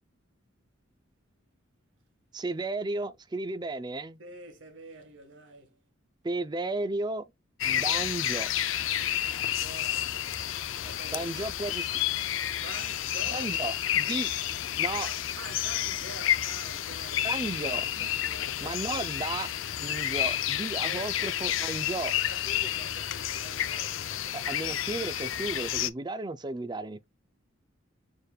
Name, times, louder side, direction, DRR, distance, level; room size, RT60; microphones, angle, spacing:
voice 1, 2.3-4.2 6.2-7.2 7.6-8.5 11.1-11.9 13.3-14.3 14.8-15.1 17.2-18.1 18.6-19.5 19.8-22.1 24.3-27.0, right 2 dB, 20° right, 0.4 m, -34 dB
voice 2, 4.2-5.8 7.7-8.0 9.3-10.5 10.8-11.5 12.6-13.7 15.0-17.3 18.0-19.0 20.8-21.3 22.1-24.6, right 2 dB, 65° right, 1.8 m, -47 dB
sound 1, 7.6-25.9, left 11 dB, 75° left, 0.5 m, -30 dB
6.6 x 3.3 x 2.3 m
head